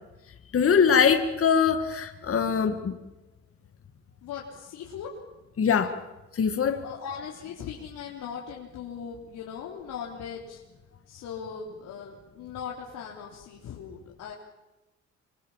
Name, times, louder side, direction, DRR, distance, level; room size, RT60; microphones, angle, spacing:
voice 1, 0.5-3.0 5.6-6.0 6.3-6.8, left 6 dB, 50° left, 7 dB, 2.1 m, -22 dB
voice 2, 4.2-5.1 6.8-10.6 11.1-14.3, left 7 dB, 90° left, -3 dB, 3.7 m, -39 dB
26.5 x 25.0 x 7.5 m, 1.0 s
cardioid pair, 90°, 30 cm